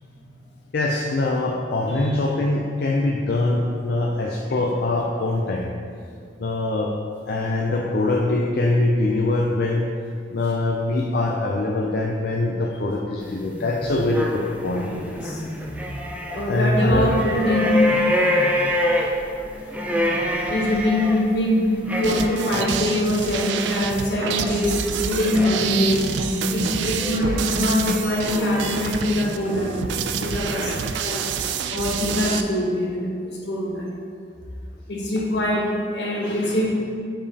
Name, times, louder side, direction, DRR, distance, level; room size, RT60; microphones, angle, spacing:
voice 1, 0.7-5.8 6.4-6.9 7.3-9.9 10.3-14.9 16.5-17.1 17.6-17.7 22.2-22.3 23.6-23.7 24.1-24.2 26.7-27.0, left 2 dB, 60° left, -1 dB, 0.5 m, -23 dB
sound 1, 13.2-16.4 16.7-29.4 29.9-30.8, left 1 dB, 10° right, 0.5 m, -27 dB
voice 2, 14.9-15.5 16.3-18.0 18.6-18.8 19.6-19.7 20.5-26.1 26.5-29.8 30.2-33.9 34.9-36.7, left 1 dB, 80° left, -2 dB, 1.1 m, -23 dB
sound 2, 22.0-32.4, right 7 dB, 80° right, 0.3 m, -28 dB
7.2 x 5.0 x 2.8 m, 2.3 s
head